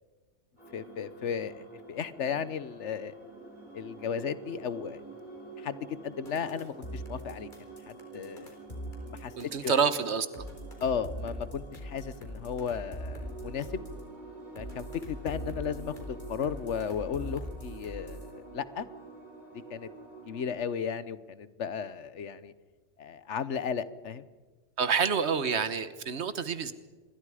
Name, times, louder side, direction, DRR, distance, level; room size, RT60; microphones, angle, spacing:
sound 1, 0.6-20.5, right 3 dB, 40° right, 4.4 m, -48 dB
voice 1, 0.7-3.2 3.7-5.0 5.6-8.6 9.0-9.8 10.8-13.8 14.5-18.9 19.7-19.9 20.3-22.5 23.0-24.3, left 7 dB, 90° left, 15 dB, 1.3 m, -35 dB
sound 2, 6.3-9.8 10.3-14.0 14.6-18.3, equal, 45° left, 4.4 m, -41 dB
voice 2, 9.4-10.3 24.8-26.7, right 6 dB, 70° right, 13 dB, 1.4 m, -28 dB
27.0 x 22.5 x 5.0 m, 1.4 s
omnidirectional pair, 1.2 m